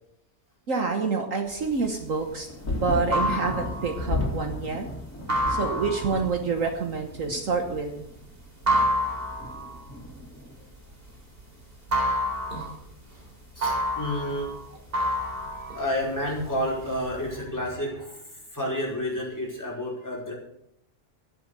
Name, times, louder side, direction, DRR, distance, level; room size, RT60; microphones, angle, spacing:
voice 1, 0.7-4.8 5.5-8.1, right 4 dB, 60° right, 4 dB, 1.6 m, -27 dB
sound 1, 1.6-11.4 11.7-16.5 16.8-17.4, equal, 35° right, 3.9 m, -29 dB
sound 2, 2.1-11.1 11.4-12.3 13.2-13.3, left 2 dB, 60° left, 2.9 m, -36 dB
voice 2, 13.5-20.3, left 1 dB, 10° left, -3 dB, 5.1 m, -31 dB
13.0 x 10.5 x 6.7 m, 0.76 s
omnidirectional pair, 1.6 m